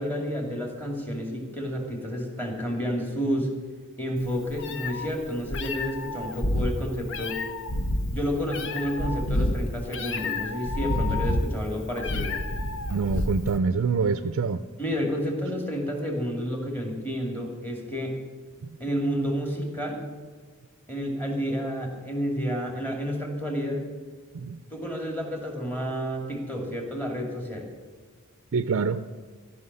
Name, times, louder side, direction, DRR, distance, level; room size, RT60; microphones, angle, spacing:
voice 1, 0.0-3.5 4.0-7.4 8.1-12.4 14.8-18.1 18.8-20.0 20.9-23.8 24.7-27.7, equal, 10° left, 1 dB, 2.4 m, -30 dB
Meow, 4.2-13.6, left 1 dB, 60° left, 0.9 m, -29 dB
voice 2, 12.9-14.6 18.6-18.7 24.3-24.6 28.5-29.1, right 5 dB, 60° right, 11 dB, 0.4 m, -26 dB
14.0 x 6.1 x 9.6 m, 1.5 s
head